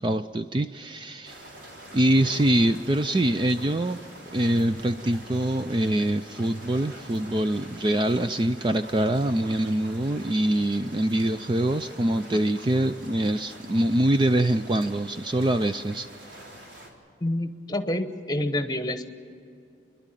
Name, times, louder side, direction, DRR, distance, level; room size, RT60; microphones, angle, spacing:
voice 1, 0.0-1.4 1.9-4.0 4.3-16.1, right 1 dB, 25° right, 9 dB, 0.4 m, -24 dB
sound 1, 1.2-16.9, right 1 dB, 80° right, 3.9 m, -46 dB
voice 2, 17.2-19.0, left 1 dB, 20° left, 8 dB, 1.0 m, -28 dB
29.0 x 11.5 x 9.1 m, 2.6 s
head